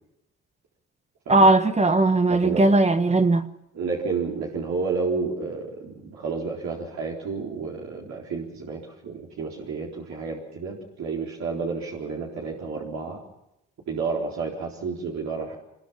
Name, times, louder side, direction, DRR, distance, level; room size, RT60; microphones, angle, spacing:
voice 1, 1.3-3.5, right 2 dB, 20° right, 1.2 m, -18 dB
voice 2, 2.3-2.6 3.7-13.2 13.9-15.5, right 4 dB, 65° right, 4.2 m, -30 dB
25.5 x 22.0 x 5.9 m
cardioid pair, 90°, 30 cm